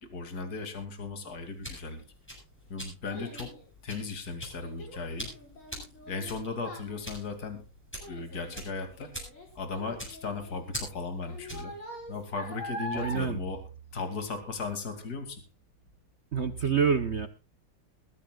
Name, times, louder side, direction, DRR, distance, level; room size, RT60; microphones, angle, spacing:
voice 1, 0.0-2.0 2.7-3.5 3.8-5.3 6.1-7.6 8.1-9.1 9.5-11.7 12.1-13.6 13.9-15.4, left 4 dB, 45° left, 7 dB, 3.0 m, -36 dB
sound 1, 1.3-11.8, equal, 5° left, 7.8 m, -44 dB
Child speech kid speaking, 2.0-14.6 14.9-15.4 15.9-16.0, equal, 70° left, 6.2 m, -44 dB
voice 2, 12.9-13.4 16.3-17.3, right 6 dB, 50° right, 10 dB, 0.8 m, -27 dB
21.5 x 15.0 x 2.4 m, 0.33 s
omnidirectional pair, 2.3 m